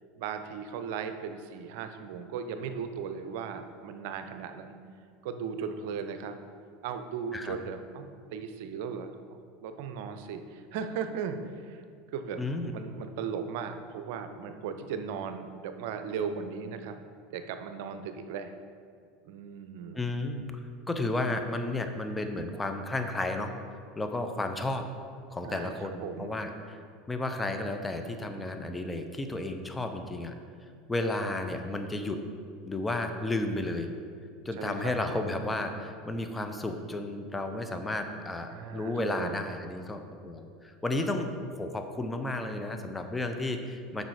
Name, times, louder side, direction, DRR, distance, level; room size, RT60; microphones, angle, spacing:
voice 1, 0.2-4.8 5.2-6.4 6.8-9.2 9.6-11.8 12.1-17.0 17.3-18.5 19.2-20.0 25.4-26.4 34.6-34.9 38.5-39.4, right 6 dB, 70° right, 8 dB, 0.6 m, -37 dB
voice 2, 12.4-12.7 19.9-20.4 20.9-23.5 24.0-24.9 25.3-26.8 27.1-30.3 30.9-32.2 32.6-33.9 34.4-44.0, left 2 dB, 15° left, 6 dB, 0.7 m, -32 dB
7.5 x 5.5 x 4.8 m, 2.2 s
hypercardioid pair, 90°, 0 cm